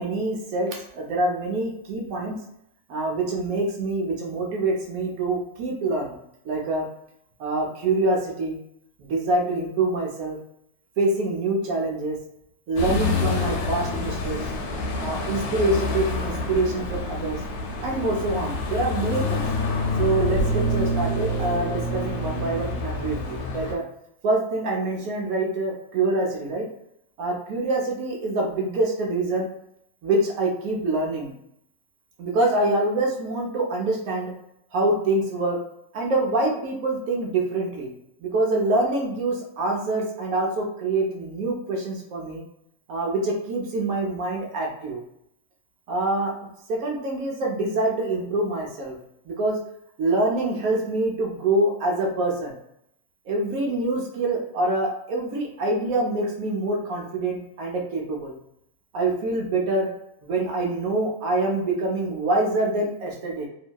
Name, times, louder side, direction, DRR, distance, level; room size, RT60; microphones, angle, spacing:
voice 1, 0.0-2.3 2.9-6.1 6.5-6.8 7.4-8.6 9.0-10.4 11.0-12.2 12.7-14.4 15.0-17.4 17.8-19.4 20.0-23.8 24.2-26.7 27.2-29.5 30.0-31.3 32.2-34.3 34.7-35.6 35.9-37.9 38.2-42.4 42.9-45.0 45.9-46.3 46.7-49.0 49.3-49.6 50.0-52.5 53.3-58.3 58.9-59.9 60.2-63.5, right 2 dB, 65° right, -1 dB, 1.0 m, -25 dB
sound 1, 12.8-23.7, left 2 dB, 75° left, 1.0 m, -27 dB
2.8 x 2.6 x 2.2 m, 0.76 s
omnidirectional pair, 1.7 m